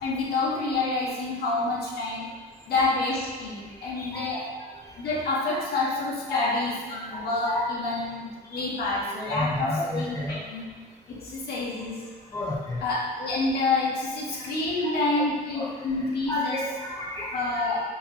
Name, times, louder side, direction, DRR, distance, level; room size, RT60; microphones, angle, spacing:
voice 1, 0.0-2.3 2.7-4.5 5.0-10.6 11.1-12.0 12.8-16.6 17.3-17.8, left 3 dB, 65° left, -4 dB, 0.6 m, -28 dB
voice 2, 4.0-4.5 6.3-6.5 7.1-7.6 8.5-8.7 9.3-10.4 12.3-12.8 14.4-14.5 15.5-15.7 16.3-17.5, left 1 dB, 20° left, -4 dB, 0.8 m, -31 dB
2.9 x 2.7 x 2.5 m, 1.5 s
cardioid pair, 80°, 18 cm